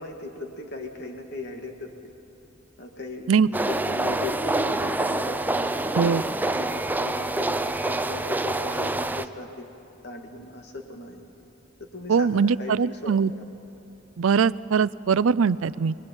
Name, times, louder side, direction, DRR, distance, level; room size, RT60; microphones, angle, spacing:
voice 1, 0.0-2.1 2.8-9.6 10.0-11.2 11.9-12.7 13.0-13.1, left 2 dB, 60° left, 3 dB, 2.5 m, -38 dB
sound 1, 3.5-9.3, right 2 dB, 10° right, 0.5 m, -26 dB
voice 2, 12.1-13.3 14.2-15.9, right 6 dB, 80° right, 18 dB, 0.5 m, -21 dB
23.0 x 21.5 x 8.9 m, 2.9 s
head